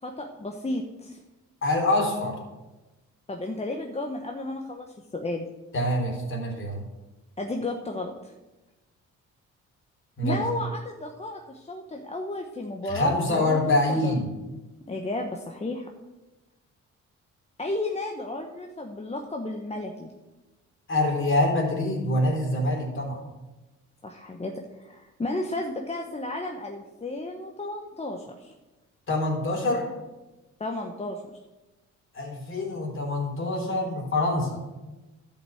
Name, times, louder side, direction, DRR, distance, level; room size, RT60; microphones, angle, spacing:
voice 1, 0.0-1.2 3.3-5.5 7.4-8.3 10.2-14.2 14.9-15.9 17.6-20.1 24.0-28.5 30.6-31.2, left 2 dB, 20° left, 2 dB, 1.0 m, -33 dB
voice 2, 1.6-2.4 5.7-6.8 10.2-10.4 12.8-14.3 20.9-23.2 29.1-29.9 32.1-34.6, left 1 dB, 40° left, 0 dB, 3.7 m, -25 dB
11.0 x 5.5 x 7.9 m, 1.1 s
cardioid pair, 90°, 30 cm